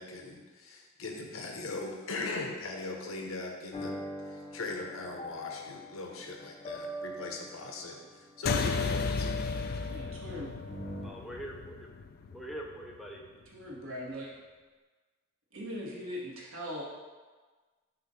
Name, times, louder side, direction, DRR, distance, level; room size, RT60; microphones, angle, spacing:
voice 1, 0.0-4.0 4.3-9.4, left 3 dB, 75° left, 1 dB, 0.9 m, -40 dB
sound 1, 3.7-11.1, equal, 25° left, 0.9 m, -43 dB
sound 2, 8.5-13.3, left 5 dB, 50° left, 0.4 m, -34 dB
voice 2, 9.9-10.5 13.5-14.3 15.5-16.8, equal, 75° right, -4 dB, 1.5 m, -40 dB
voice 3, 11.0-11.9 12.3-13.2, right 1 dB, ahead, -1 dB, 0.5 m, -43 dB
6.7 x 2.5 x 5.5 m, 1.4 s
head